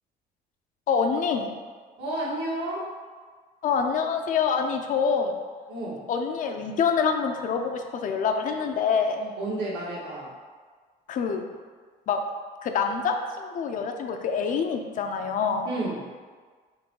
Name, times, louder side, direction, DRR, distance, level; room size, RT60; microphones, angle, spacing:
voice 1, 0.9-1.6 3.6-5.3 6.1-9.2 11.1-11.4 12.1-12.2 12.6-15.7, left 6 dB, 50° left, 4 dB, 0.4 m, -26 dB
voice 2, 2.0-2.9 5.7-6.0 9.2-10.3 15.6-16.1, right 1 dB, 85° right, -6 dB, 1.3 m, -31 dB
3.8 x 2.2 x 4.4 m, 1.5 s
cardioid pair, 110°, 17 cm